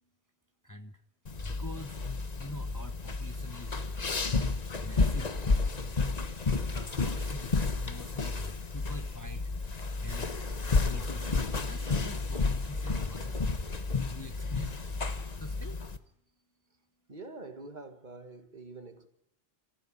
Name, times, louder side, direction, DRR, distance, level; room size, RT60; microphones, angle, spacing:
voice 1, 0.6-1.0 1.4-2.1 2.4-3.9 4.8-5.3 6.7-9.5 10.0-10.3 10.8-15.8, left 2 dB, 20° left, 1.0 m, -45 dB
sound 1, 1.3-16.0, left 3 dB, 40° left, 1.3 m, -31 dB
voice 2, 17.1-19.1, right 3 dB, 45° right, 1.9 m, -46 dB
28.0 x 15.0 x 9.9 m
omnidirectional pair, 1.1 m